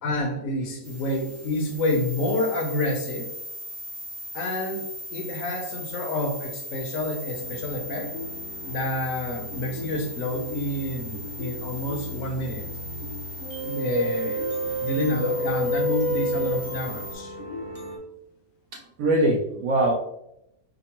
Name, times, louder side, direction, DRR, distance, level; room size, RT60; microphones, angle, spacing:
voice 1, 0.0-3.3 4.3-8.1 8.7-12.6 13.6-14.4 14.8-17.3, left 1 dB, 65° left, 3 dB, 1.0 m, -28 dB
sound 1, 0.8-17.1, left 1 dB, 90° right, 1.3 m, -39 dB
sound 2, 7.3-18.0, right 1 dB, 35° left, 0.5 m, -32 dB
voice 2, 18.7-19.9, right 1 dB, 70° right, -2 dB, 1.0 m, -22 dB
5.1 x 2.0 x 2.9 m, 0.82 s
omnidirectional pair, 1.6 m